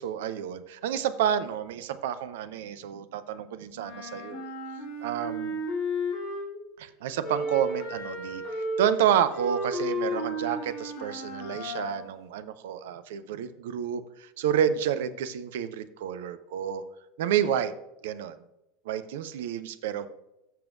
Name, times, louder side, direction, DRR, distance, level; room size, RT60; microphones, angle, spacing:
voice 1, 0.0-4.5 5.0-5.6 6.8-16.8 17.2-17.7 18.0-18.4 18.9-20.1, right 9 dB, 60° right, 13 dB, 0.6 m, -29 dB
Wind instrument woodwind instrument, 3.7-6.7 7.2-12.1, left 1 dB, 55° left, 2.6 m, -33 dB
15.0 x 6.8 x 2.4 m, 0.92 s
figure-of-eight pair, 80°, 0 cm